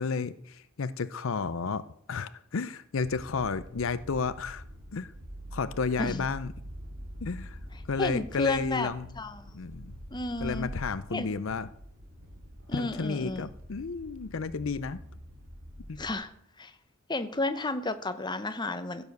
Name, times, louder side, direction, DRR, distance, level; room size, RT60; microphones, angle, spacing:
voice 1, 0.0-1.8 2.1-4.6 4.9-5.1 5.5-6.5 7.2-7.6 7.8-9.1 9.5-10.0 10.4-11.7 12.7-15.0 15.9-16.0, left 4 dB, 70° left, 14 dB, 0.6 m, -32 dB
sound 1, 2.9-16.1, equal, 85° right, 3.0 m, -45 dB
voice 2, 8.0-8.9 9.2-9.5 10.1-10.7 11.1-11.3 12.7-13.5 16.0-16.3 16.6-16.7 17.1-19.0, left 2 dB, 20° left, 9 dB, 0.9 m, -32 dB
16.0 x 7.0 x 6.6 m, 0.70 s
head